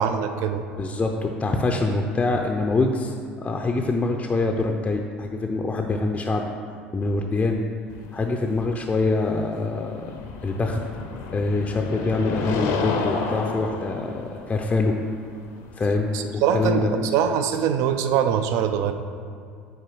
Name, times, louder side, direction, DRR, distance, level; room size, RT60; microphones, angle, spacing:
voice 1, 0.0-0.6 16.1-18.9, right 8 dB, 60° right, 8 dB, 0.4 m, -23 dB
voice 2, 0.8-6.5 6.9-7.6 8.1-10.1 10.4-10.8 11.3-15.0 15.7-16.9, left 3 dB, 20° left, 2 dB, 0.5 m, -25 dB
sound 1, 7.9-16.7, left 4 dB, 60° left, 0.6 m, -32 dB
8.0 x 4.5 x 3.0 m, 2.2 s
hypercardioid pair, 70°, 6 cm